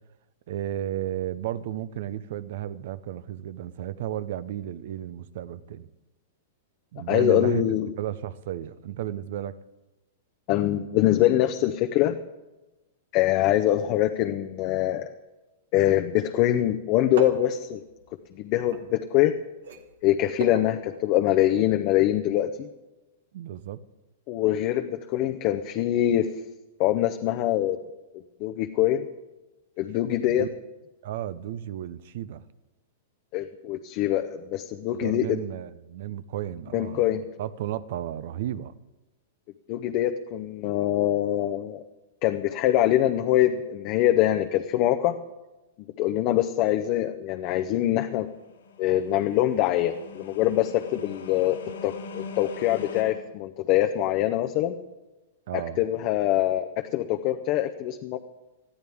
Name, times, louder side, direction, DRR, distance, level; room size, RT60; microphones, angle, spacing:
voice 1, 0.5-5.9 6.9-7.6 8.0-9.5 23.3-23.8 30.2-30.5 31.0-32.4 34.9-38.7 55.5-55.8, right 12 dB, 65° right, 16 dB, 0.7 m, -33 dB
voice 2, 7.1-7.9 10.5-12.2 13.1-15.1 15.7-17.8 18.4-19.3 20.0-22.7 24.3-26.3 26.8-27.8 28.4-29.0 29.8-30.5 33.3-35.4 36.7-37.2 39.7-41.8 42.2-45.2 46.0-48.3 48.8-51.6 51.8-54.8 55.5-58.2, left 13 dB, 45° left, 7 dB, 0.7 m, -24 dB
sound 1, 17.1-19.3 19.6-21.6 21.9-22.0, right 5 dB, 80° right, 1.5 m, -38 dB
sound 2, 48.4-53.0, left 4 dB, 90° left, 3.8 m, -42 dB
20.0 x 13.0 x 3.5 m, 1.1 s
hypercardioid pair, 135°, 0 cm